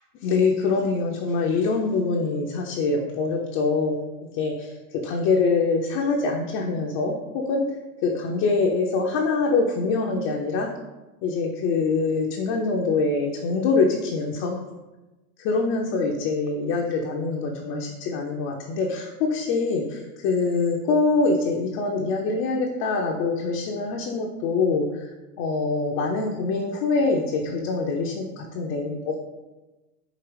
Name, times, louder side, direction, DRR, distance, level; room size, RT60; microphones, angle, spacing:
voice 1, 0.2-4.0 4.3-7.6 8.0-10.7 11.2-14.6 15.4-25.1 25.4-29.2, left 4 dB, 35° left, 0 dB, 0.4 m, -24 dB
4.8 x 2.8 x 3.1 m, 1.1 s
supercardioid pair, 125°, 44 cm